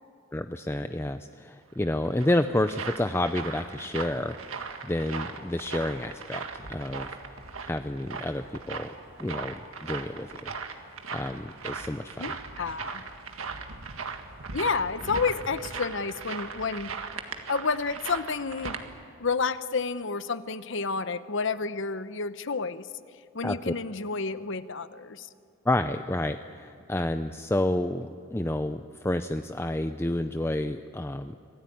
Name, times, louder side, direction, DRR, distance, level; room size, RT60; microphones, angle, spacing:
voice 1, 0.3-4.4 4.8-7.1 7.6-8.9 9.2-10.5 11.1-12.2 23.4-23.7 25.7-31.4, left 1 dB, 10° left, 9 dB, 0.5 m, -29 dB
sound 1, 1.8-18.8, right 4 dB, 80° right, 1.8 m, -39 dB
voice 2, 12.2-13.0 14.5-16.9 17.5-18.8 19.2-22.9 23.3-25.3, left 4 dB, 60° left, 13 dB, 0.9 m, -30 dB
26.0 x 17.5 x 9.3 m, 2.4 s
head